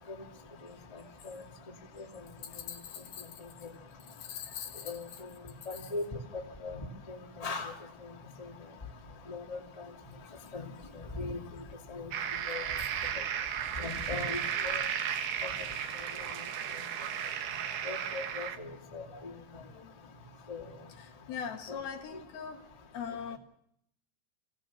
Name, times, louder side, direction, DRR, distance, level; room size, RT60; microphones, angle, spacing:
voice 1, 2.5-3.3 4.1-5.2 5.7-5.9 12.8-12.9 13.8-13.9 18.9-19.9 21.0-22.6 22.9-23.4, left 7 dB, 70° left, 3.3 m, -43 dB
voice 2, 5.7-6.0 6.3-6.8 7.1-7.7 9.3-9.6 10.5-10.6 11.2-11.4 11.9-12.1 12.5-12.6 13.8-14.8 17.8-18.5 18.9-19.0 20.5-20.6 21.7-21.8, left 3 dB, 15° left, 1.7 m, -37 dB
sound 1, 12.1-18.6, right 9 dB, 75° right, 3.3 m, -34 dB
22.5 x 16.5 x 7.1 m
omnidirectional pair, 4.7 m